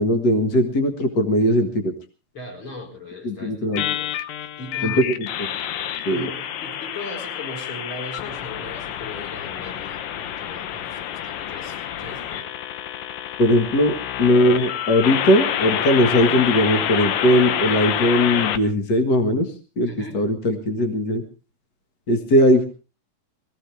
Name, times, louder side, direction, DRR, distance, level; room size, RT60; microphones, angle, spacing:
voice 1, 0.0-1.9 3.2-3.8 4.8-5.3 6.0-6.2 13.4-21.2 22.1-22.6, left 1 dB, 50° left, 5 dB, 1.2 m, -19 dB
voice 2, 2.3-5.1 6.1-12.5 19.9-20.2, left 2 dB, 30° left, 0 dB, 5.2 m, -38 dB
sound 1, 3.7-18.6, left 10 dB, 70° left, 2.5 m, -28 dB
22.0 x 16.5 x 3.4 m, 0.34 s
omnidirectional pair, 4.5 m